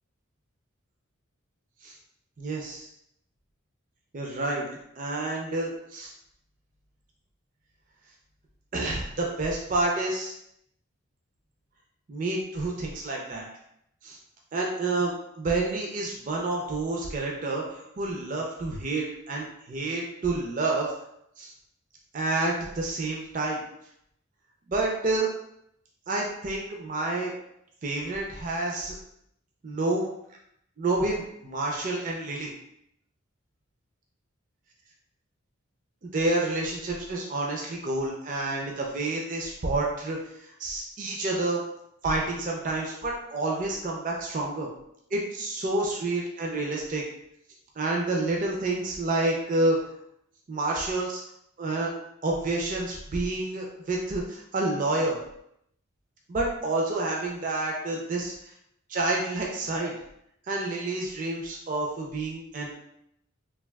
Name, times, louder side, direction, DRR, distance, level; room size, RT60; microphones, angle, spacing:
voice 1, 2.4-2.9 4.1-4.7 5.0-6.1 8.7-10.3 12.1-13.5 14.0-14.2 14.5-20.9 21.4-21.5 22.1-23.6 24.7-25.3 26.1-27.3 27.8-29.0 29.6-30.1 30.8-32.5 36.0-40.2 40.6-41.6 42.0-44.7 45.1-47.0 47.8-49.8 50.5-51.2 51.6-51.9 52.2-55.2 56.3-58.3 58.9-59.9 60.5-62.7, right 2 dB, 40° right, -1 dB, 0.4 m, -29 dB
3.3 x 2.3 x 2.2 m, 0.75 s
head